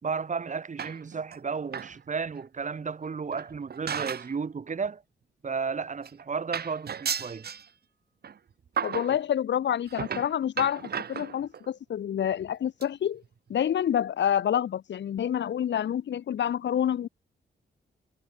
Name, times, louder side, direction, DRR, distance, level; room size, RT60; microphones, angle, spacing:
voice 1, 0.0-5.0 5.4-7.5, right 5 dB, 45° right, 6.1 m, -33 dB
sound 1, 0.8-1.4 1.7-2.0 2.3-2.4 3.3-4.4 4.7-4.9 5.7-5.8 6.0-6.2 6.5-7.7 8.2-8.4 8.8-9.2 9.9-11.7 12.3-12.5 12.8-12.9 13.2-13.3 13.5-13.6, right 7 dB, 60° right, 2.9 m, -34 dB
voice 2, 8.8-13.2 13.5-17.1, left 9 dB, 80° left, 1.2 m, -28 dB
wide cardioid pair, 140°, 18 cm